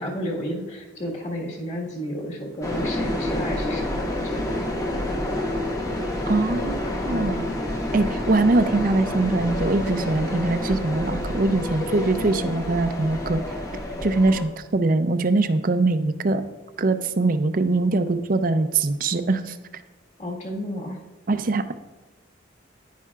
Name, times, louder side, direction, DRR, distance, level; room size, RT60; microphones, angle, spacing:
voice 1, 0.0-5.5 7.1-7.4 20.2-21.0, equal, 35° left, -2 dB, 1.7 m, -32 dB
sound 1, 2.6-14.4, left 1 dB, 15° left, 1.0 m, -28 dB
voice 2, 6.3-7.5 7.9-13.4 14.0-16.4 16.8-19.6 21.3-21.7, right 2 dB, 45° right, 10 dB, 0.5 m, -22 dB
10.5 x 10.0 x 2.4 m, 1.2 s
head